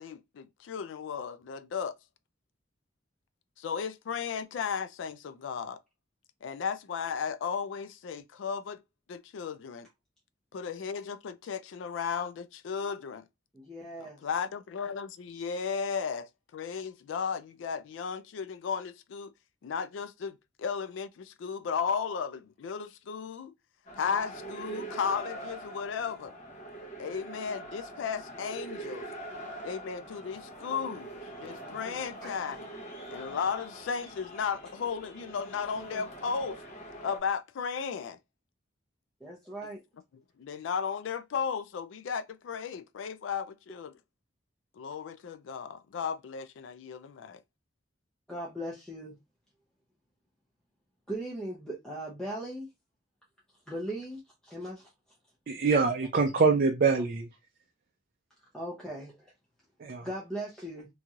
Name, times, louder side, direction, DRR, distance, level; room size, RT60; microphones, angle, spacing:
voice 1, 0.0-2.0 3.6-5.8 6.4-8.8 9.1-9.9 10.5-13.3 14.0-19.3 19.6-23.5 24.0-26.3 27.0-29.1 29.6-31.1 31.4-32.7 33.1-36.6 37.0-38.2 40.4-43.9 44.7-47.4, left 6 dB, 80° left, 0.4 m, -35 dB
voice 2, 13.5-14.2 32.2-32.3 39.2-39.8 48.3-49.1 51.1-52.7 53.7-54.9 58.5-59.3 60.0-60.9, right 1 dB, 5° left, 0.6 m, -38 dB
sound 1, 23.9-37.2, right 1 dB, 40° left, 0.9 m, -43 dB
voice 3, 55.5-57.3 59.8-60.1, right 4 dB, 50° right, 0.4 m, -25 dB
2.9 x 2.7 x 2.4 m
head